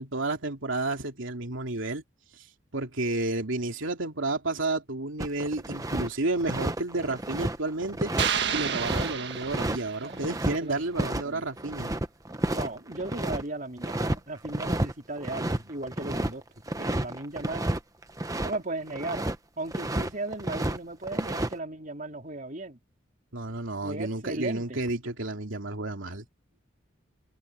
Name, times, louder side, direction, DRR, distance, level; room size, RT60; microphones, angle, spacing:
voice 1, 0.0-2.0 2.4-2.5 2.7-11.9 23.3-26.2, right 2 dB, 80° right, 2.7 m, -31 dB
sound 1, 5.2-6.1 6.4-10.6 11.0-11.2 11.5-13.4 13.8-14.2 14.4-14.9 15.2-18.6 18.9-19.4 19.7-20.8 21.0-21.5, right 1 dB, 15° right, 1.1 m, -30 dB
sound 2, 8.2-10.3, right 7 dB, 55° right, 1.7 m, -31 dB
voice 2, 10.0-11.5 12.5-16.4 16.8-17.7 18.4-19.3 19.6-22.8 23.8-24.6, right 2 dB, 40° right, 3.4 m, -36 dB
head